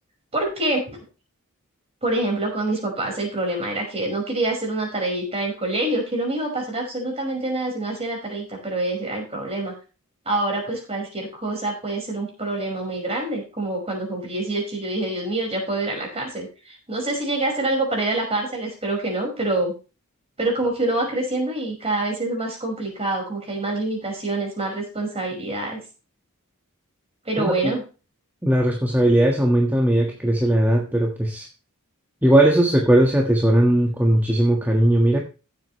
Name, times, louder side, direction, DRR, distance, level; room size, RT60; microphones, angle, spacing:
voice 1, 0.3-1.0 2.0-9.7 10.3-19.7 20.4-25.8 27.3-27.8, right 2 dB, 30° right, 1 dB, 5.4 m, -26 dB
voice 2, 28.4-31.5 32.2-35.2, right 1 dB, 10° right, 0 dB, 1.5 m, -18 dB
15.5 x 8.0 x 3.2 m, 0.32 s
head